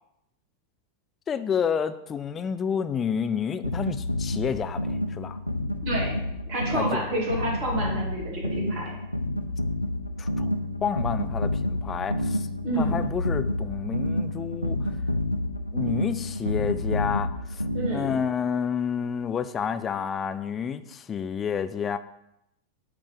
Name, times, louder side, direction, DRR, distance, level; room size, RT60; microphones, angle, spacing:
voice 1, 1.3-5.4 6.7-7.2 10.2-10.5 10.8-12.5 12.8-14.9 15.7-17.6 17.9-22.0, left 7 dB, 25° left, 11 dB, 0.4 m, -30 dB
sound 1, 3.6-18.3, left 1 dB, 90° left, 0.4 m, -29 dB
voice 2, 5.8-6.2 6.5-8.9 12.6-13.0 17.7-18.1, right 1 dB, 40° right, -2 dB, 2.0 m, -29 dB
7.9 x 3.4 x 5.1 m, 0.82 s
figure-of-eight pair, 90°, 0 cm